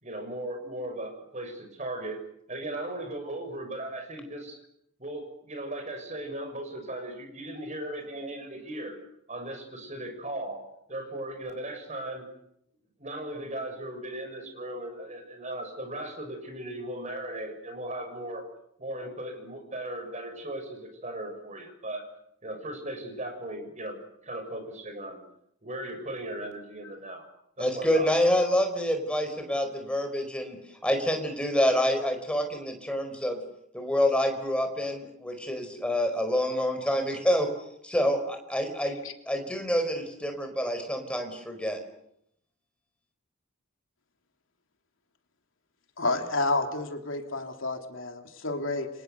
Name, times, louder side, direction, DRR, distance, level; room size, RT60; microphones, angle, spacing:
voice 1, 0.0-2.2 2.5-4.6 5.0-9.0 9.3-12.3 13.0-18.5 18.8-22.1 22.4-25.2 25.6-27.3 27.6-28.1, right 1 dB, 35° right, 6 dB, 6.5 m, -37 dB
voice 2, 27.6-33.4 33.7-37.5 37.8-39.0 39.3-41.8, equal, 5° left, 5 dB, 4.9 m, -27 dB
voice 3, 46.0-48.9, left 2 dB, 65° left, 4 dB, 3.2 m, -30 dB
29.5 x 26.0 x 6.9 m, 0.75 s
head